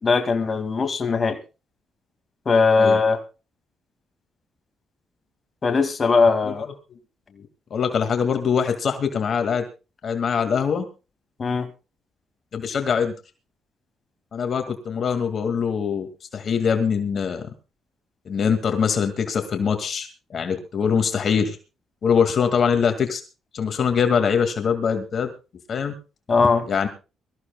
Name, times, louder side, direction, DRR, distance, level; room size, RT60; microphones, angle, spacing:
voice 1, 0.0-1.4 2.5-3.2 5.6-6.7 11.4-11.7 26.3-26.7, left 4 dB, 35° left, 2.1 m, -19 dB
voice 2, 7.7-9.6 10.0-10.9 12.5-13.1 14.3-16.1 16.3-17.5 18.3-21.6 22.0-23.2 23.5-25.3 25.7-25.9 26.7-26.9, left 6 dB, 55° left, 2.1 m, -23 dB
23.5 x 14.5 x 2.3 m
cardioid pair, 90°, 0 cm